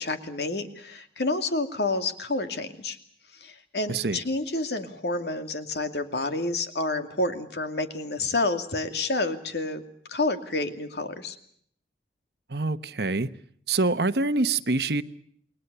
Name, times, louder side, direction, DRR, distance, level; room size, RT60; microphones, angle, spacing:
voice 1, 0.0-3.0 3.3-9.8 10.1-11.4, left 2 dB, 65° left, 2.5 m, -29 dB
voice 2, 3.9-4.2 12.5-13.3 13.7-15.0, right 3 dB, 65° right, 1.1 m, -25 dB
29.0 x 21.0 x 6.9 m
head